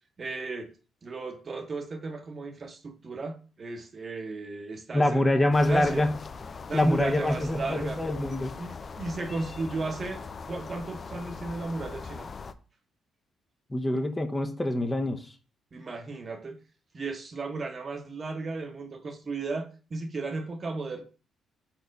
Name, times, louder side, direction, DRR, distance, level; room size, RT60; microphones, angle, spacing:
voice 1, 0.2-0.7 1.0-5.3 5.6-6.1 6.7-8.0 8.6-12.3 15.7-16.6 16.9-21.0, right 3 dB, 40° right, 1.1 m, -34 dB
voice 2, 4.9-6.1 6.7-8.5 13.7-15.3, left 1 dB, 15° left, 0.9 m, -25 dB
sound 1, 5.5-12.5, left 4 dB, 40° left, 0.5 m, -41 dB
4.4 x 4.2 x 5.2 m
cardioid pair, 90°, 0 cm